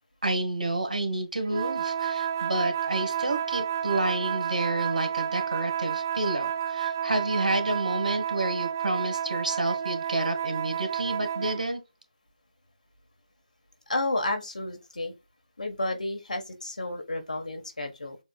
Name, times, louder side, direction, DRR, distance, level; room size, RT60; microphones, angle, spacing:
voice 1, 0.2-11.8, right 2 dB, 80° right, 1.5 m, -29 dB
sound 1, 1.5-11.7, right 8 dB, 25° right, 0.3 m, -30 dB
voice 2, 13.9-15.1 15.6-18.2, left 2 dB, 70° left, 1.4 m, -31 dB
7.0 x 2.5 x 2.3 m
figure-of-eight pair, 160°, 4 cm